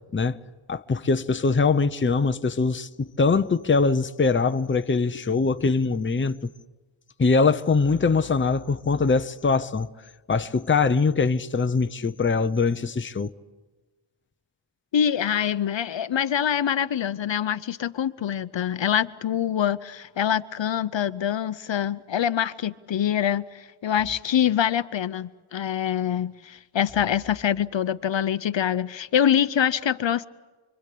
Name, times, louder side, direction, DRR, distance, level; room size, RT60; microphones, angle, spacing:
voice 1, 0.7-6.5 7.2-9.9 10.3-13.3, left 4 dB, 25° left, 0.8 m, -22 dB
voice 2, 14.9-30.2, left 9 dB, 60° left, 0.8 m, -25 dB
29.0 x 23.5 x 8.5 m
wide cardioid pair, 110°, 49 cm